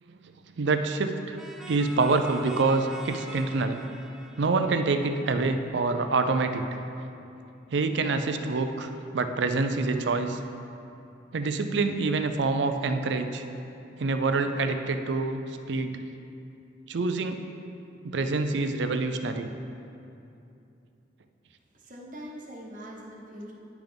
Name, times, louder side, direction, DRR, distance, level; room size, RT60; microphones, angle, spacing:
voice 1, 0.6-1.4 1.7-3.8 4.4-6.6 7.7-10.4 11.3-13.4 14.0-16.0 16.9-17.4 18.0-19.5, right 3 dB, 65° right, 7 dB, 0.5 m, -26 dB
sound 1, 1.4-5.9, right 1 dB, ahead, 0.4 m, -45 dB
voice 2, 21.7-23.5, equal, 45° right, -3 dB, 1.1 m, -42 dB
10.0 x 5.9 x 3.5 m, 2.7 s
head